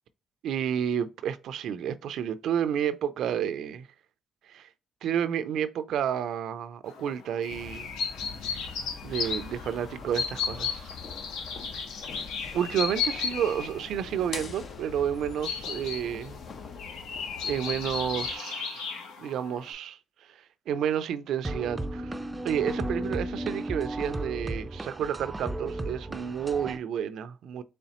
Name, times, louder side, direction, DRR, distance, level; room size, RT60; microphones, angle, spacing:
voice 1, 0.4-3.9 4.5-4.7 5.0-7.9 8.5-8.7 9.0-10.9 11.7-11.9 12.5-16.4 17.4-20.0 20.7-22.1 22.4-27.6, right 9 dB, 75° right, 0.4 m, -30 dB
sound 1, 6.9-19.7, left 6 dB, 85° left, 0.7 m, -35 dB
sound 2, 7.5-18.4, left 5 dB, 55° left, 0.8 m, -44 dB
sound 3, 21.4-26.8, right 1 dB, 20° right, 0.4 m, -34 dB
4.2 x 3.3 x 2.9 m
supercardioid pair, 70°, 0 cm